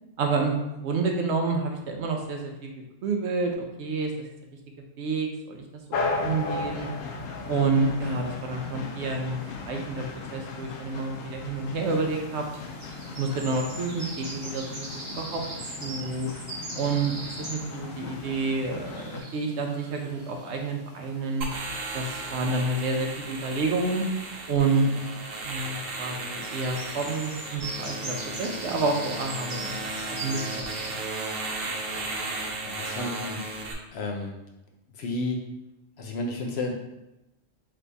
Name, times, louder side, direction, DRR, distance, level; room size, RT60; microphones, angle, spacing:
voice 1, 0.2-2.7 3.0-4.3 5.0-5.6 6.2-6.9 7.5-10.0 10.3-12.5 13.2-14.9 15.2-16.3 16.7-17.2 17.5-21.5 21.9-24.0 24.5-25.2 25.5-30.9, right 3 dB, 65° right, 2 dB, 0.8 m, -29 dB
sound 1, 5.9-19.2, left 3 dB, 85° left, 1.0 m, -36 dB
sound 2, 11.8-30.9, right 2 dB, 35° right, 1.0 m, -42 dB
sound 3, 21.4-33.7, right 2 dB, 90° right, 1.1 m, -35 dB
voice 2, 32.6-33.4 33.9-34.4 34.9-35.4 36.0-36.7, left 2 dB, 65° left, 2 dB, 0.8 m, -31 dB
3.4 x 3.3 x 3.9 m, 0.94 s
omnidirectional pair, 1.3 m